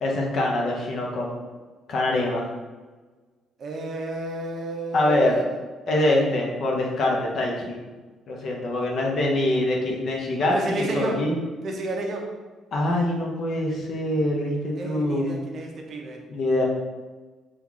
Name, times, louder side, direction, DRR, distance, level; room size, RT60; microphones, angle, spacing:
voice 1, 0.0-1.3 1.9-2.5 4.9-5.4 5.9-7.8 8.3-11.4 12.7-15.3 16.3-16.6, left 1 dB, 45° left, -1 dB, 0.6 m, -24 dB
voice 2, 3.6-5.4 5.8-6.0 10.5-11.2 11.6-12.3 14.7-16.2, right 1 dB, 45° right, 1 dB, 0.5 m, -31 dB
3.0 x 2.3 x 3.7 m, 1.3 s
cardioid pair, 155°, 0 cm